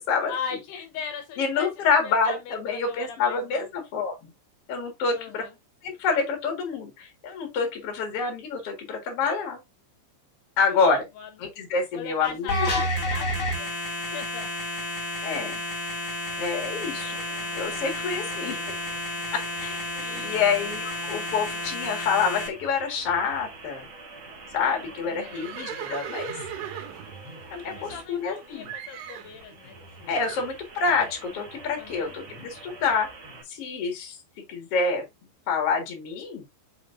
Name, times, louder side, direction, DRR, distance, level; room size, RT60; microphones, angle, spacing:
voice 1, 0.3-1.7 2.0-3.7 5.1-5.5 10.6-11.3 11.9-13.7 14.0-14.5 18.0-18.3 19.9-20.6 25.0-25.4 27.8-30.2 31.8-32.2, left 6 dB, 75° left, 2.5 m, -39 dB
voice 2, 1.4-4.3 4.7-5.4 5.8-9.6 10.6-11.1 11.4-12.7 15.2-15.6 16.4-17.2 17.5-18.6 19.3-19.8 20.1-23.9 24.5-26.3 27.5-28.7 30.1-33.1 33.5-34.2 34.5-35.0 35.5-36.4, left 5 dB, 60° left, 1.6 m, -27 dB
sound 1, 12.5-22.5, left 1 dB, 35° left, 1.9 m, -31 dB
sound 2, 16.3-33.4, right 3 dB, 40° right, 2.1 m, -46 dB
Livestock farm animals working animals, 25.2-28.3 28.7-29.4 30.1-30.5, right 8 dB, 80° right, 3.5 m, -38 dB
7.4 x 5.4 x 2.6 m
omnidirectional pair, 5.5 m